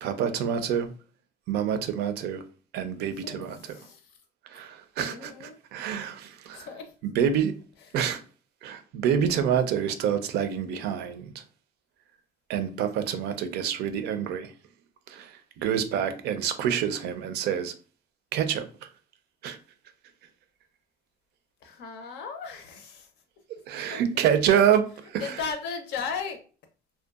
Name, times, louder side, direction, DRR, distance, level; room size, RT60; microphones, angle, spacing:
voice 1, 0.0-0.9 1.5-2.4 2.7-3.6 4.5-6.7 7.0-7.6 7.9-8.2 8.6-11.4 12.5-14.5 15.1-17.7 18.3-18.7 19.4-19.6 23.7-25.3, right 8 dB, 80° right, 0.4 m, -27 dB
voice 2, 3.2-4.2 5.1-5.6 6.5-6.9 7.8-8.0 21.6-23.1 23.6-24.0 25.2-26.4, left 6 dB, 85° left, 0.6 m, -37 dB
2.7 x 2.2 x 2.3 m
cardioid pair, 110°, 17 cm